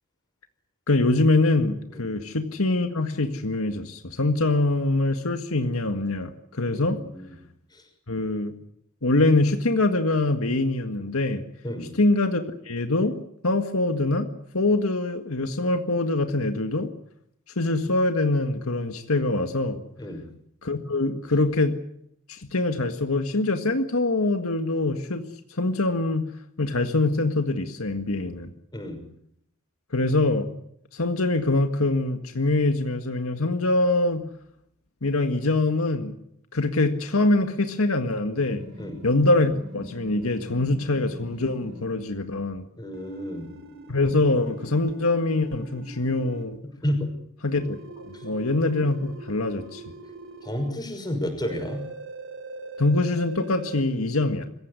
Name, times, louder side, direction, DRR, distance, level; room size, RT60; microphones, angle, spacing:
voice 1, 0.9-7.0 8.1-8.5 9.0-11.4 12.0-13.2 13.4-14.3 14.5-16.9 17.6-19.8 20.6-21.8 22.3-25.3 25.6-26.3 26.6-28.5 29.9-30.5 30.9-34.2 35.0-36.2 36.5-38.6 39.0-42.6 43.9-46.6 47.4-47.8 48.0-49.8 52.8-54.5, left 2 dB, 80° left, 6 dB, 1.8 m, -24 dB
voice 2, 6.7-7.4 7.7-7.8 11.6-11.9 20.0-20.2 28.7-29.0 38.8-39.0 42.8-43.5 46.8-47.1 48.1-48.2 50.4-51.8, left 1 dB, 20° left, 5 dB, 6.1 m, -31 dB
sound 1, 38.4-41.9 42.9-46.4 47.6-50.7 51.4-53.8, right 2 dB, 65° right, 3.7 m, -42 dB
25.5 x 15.5 x 9.8 m, 0.74 s
head